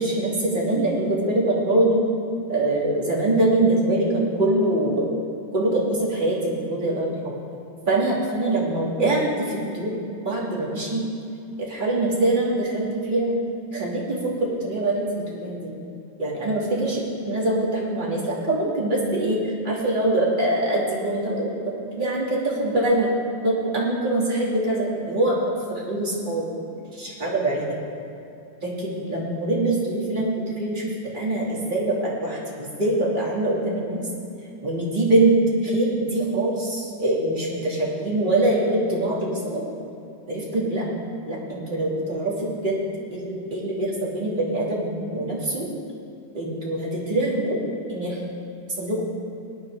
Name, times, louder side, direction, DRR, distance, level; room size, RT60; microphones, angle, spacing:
voice 1, 0.0-2.0 2.5-5.1 5.5-7.1 7.9-9.9 10.2-11.0 11.6-13.4 13.7-15.7 16.2-17.0 17.2-23.1 23.4-25.4 25.7-26.4 26.9-27.8 28.6-34.0 34.6-39.6 40.3-40.9 41.3-42.7 43.1-45.7 46.3-47.6 47.9-48.2 48.8-49.0, right 2 dB, 20° right, -5 dB, 2.8 m, -23 dB
21.0 x 9.9 x 3.8 m, 2.6 s
omnidirectional pair, 2.3 m